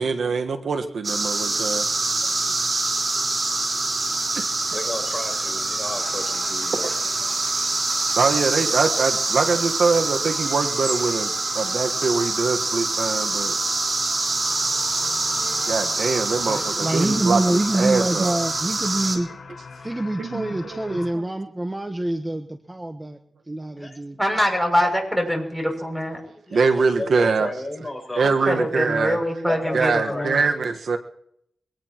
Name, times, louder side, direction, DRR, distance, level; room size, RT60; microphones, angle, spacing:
voice 1, 0.0-1.9 4.3-4.5 6.7-6.9 7.2-7.4 8.2-13.9 15.0-15.1 15.7-18.4 20.2-21.2 26.5-27.5 28.2-29.2 29.7-31.0, right 4 dB, 75° right, 6 dB, 1.4 m, -24 dB
sound 1, 1.0-19.2, right 2 dB, 45° right, 4.4 m, -25 dB
voice 2, 4.6-6.9 23.8-24.2 26.3-28.6 29.4-30.5, left 1 dB, 15° left, 2 dB, 6.9 m, -34 dB
sound 2, 6.0-21.1, left 4 dB, 70° left, 5.2 m, -41 dB
voice 3, 16.5-19.3 19.8-23.2 23.5-24.2 24.8-24.9, right 1 dB, 20° right, 7 dB, 1.2 m, -26 dB
voice 4, 24.2-26.2 28.2-30.3, equal, ahead, 3 dB, 6.8 m, -24 dB
23.5 x 18.5 x 3.0 m, 0.70 s
cardioid pair, 65°, 0 cm